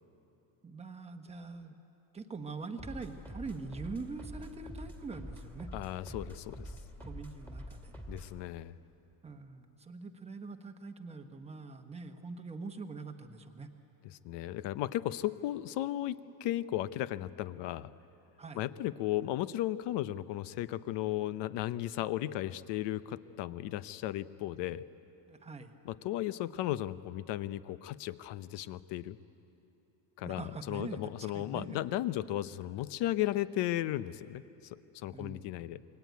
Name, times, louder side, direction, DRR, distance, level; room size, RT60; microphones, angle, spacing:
voice 1, 0.6-1.8 2.1-5.7 7.0-7.9 9.2-13.7 18.4-18.7 25.3-25.7 30.2-31.8 35.1-35.7, right 4 dB, 15° right, 6 dB, 1.0 m, -43 dB
sound 1, 2.8-8.4, equal, 5° left, 2.0 m, -46 dB
voice 2, 5.7-6.7 8.1-8.7 14.2-17.9 18.6-24.8 25.8-29.2 30.2-34.4 34.7-35.8, left 14 dB, 55° left, 15 dB, 0.8 m, -35 dB
27.5 x 22.5 x 9.4 m, 3.0 s
cardioid pair, 170°, 50 cm